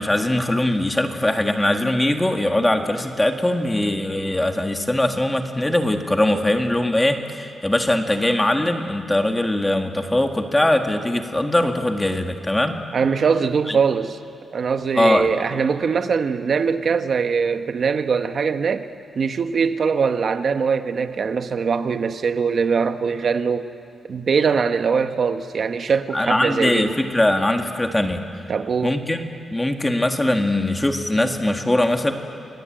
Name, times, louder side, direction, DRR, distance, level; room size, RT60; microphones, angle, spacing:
voice 1, 0.0-12.8 13.7-13.8 14.9-15.3 26.1-28.3 28.8-32.1, left 1 dB, 10° left, 5 dB, 1.7 m, -21 dB
voice 2, 12.9-14.2 14.5-18.9 19.1-23.7 24.1-27.0 28.5-29.0, right 5 dB, 50° right, 9 dB, 1.2 m, -22 dB
30.0 x 22.0 x 9.1 m, 2.4 s
wide cardioid pair, 155°, 0 cm